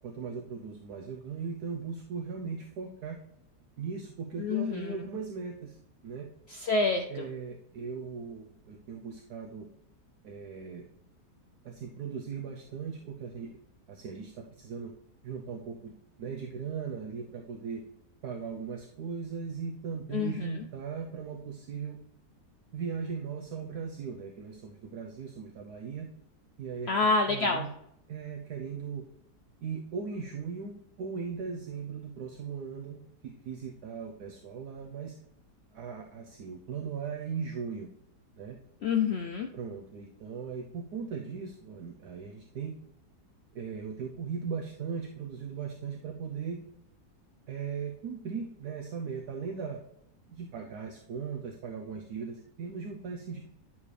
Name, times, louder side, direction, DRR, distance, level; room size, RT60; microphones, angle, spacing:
voice 1, 0.0-3.2 3.8-5.8 6.0-6.3 7.1-9.7 10.2-10.8 11.6-13.6 13.9-14.9 15.2-15.9 16.2-17.8 18.2-22.0 22.7-26.1 26.6-26.9 27.3-27.7 28.1-29.0 29.6-35.1 35.7-37.9 38.4-38.6 39.5-42.7 43.5-46.6 47.5-49.8 50.3-53.4, right 6 dB, 70° right, 1 dB, 1.3 m, -38 dB
voice 2, 4.4-5.0 6.5-7.3 20.1-20.5 26.9-27.6 38.8-39.5, left 4 dB, 85° left, 3 dB, 0.5 m, -27 dB
11.0 x 7.1 x 3.3 m, 0.76 s
omnidirectional pair, 1.8 m